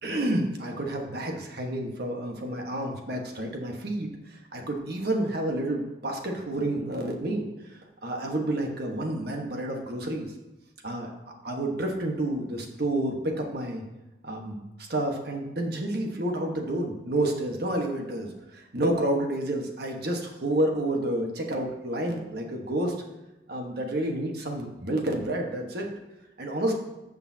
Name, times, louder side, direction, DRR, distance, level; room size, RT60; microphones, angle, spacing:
voice 1, 0.0-10.3 10.8-11.1 11.4-13.8 14.2-22.9 23.5-25.9 26.4-26.7, right 1 dB, 55° right, 2 dB, 1.3 m, -29 dB
13.5 x 6.8 x 2.8 m, 0.99 s
head